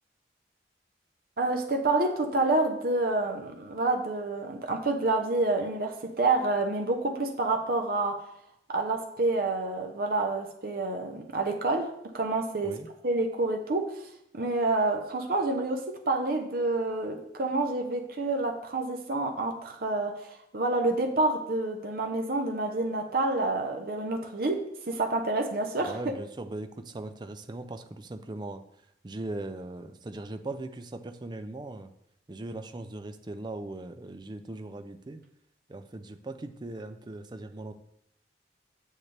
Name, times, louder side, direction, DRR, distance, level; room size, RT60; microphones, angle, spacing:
voice 1, 1.4-8.2 8.7-14.0 14.3-26.0, right 2 dB, 55° right, 3 dB, 0.8 m, -28 dB
voice 2, 25.9-28.6 29.0-31.9 32.3-35.2 35.7-37.7, right 2 dB, 25° right, 8 dB, 0.4 m, -39 dB
7.1 x 6.5 x 3.3 m, 0.76 s
head